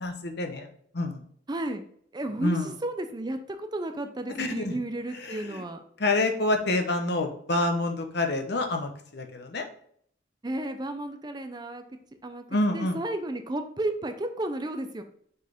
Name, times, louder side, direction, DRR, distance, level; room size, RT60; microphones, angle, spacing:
voice 1, 0.0-0.7 0.9-1.2 2.4-2.7 4.4-4.8 5.2-5.6 6.0-9.7 12.5-13.0, left 2 dB, 55° left, 5 dB, 0.9 m, -27 dB
voice 2, 1.5-1.8 2.1-5.8 10.4-11.8 12.2-12.4 12.7-15.0, right 1 dB, 20° right, 7 dB, 0.5 m, -33 dB
6.4 x 4.6 x 3.5 m, 0.64 s
head